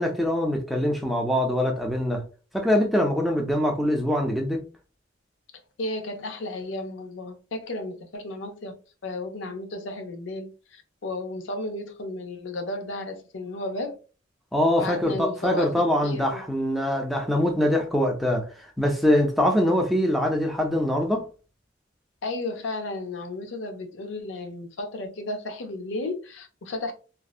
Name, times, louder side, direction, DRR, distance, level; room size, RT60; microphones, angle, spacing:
voice 1, 0.0-2.2 2.5-4.6 14.5-18.5 18.8-21.2, left 1 dB, ahead, 0.4 m, -23 dB
voice 2, 5.8-8.8 9.0-14.0 14.8-15.7 16.0-16.4 22.2-26.9, left 2 dB, 75° left, 0.5 m, -33 dB
2.6 x 2.0 x 2.3 m
head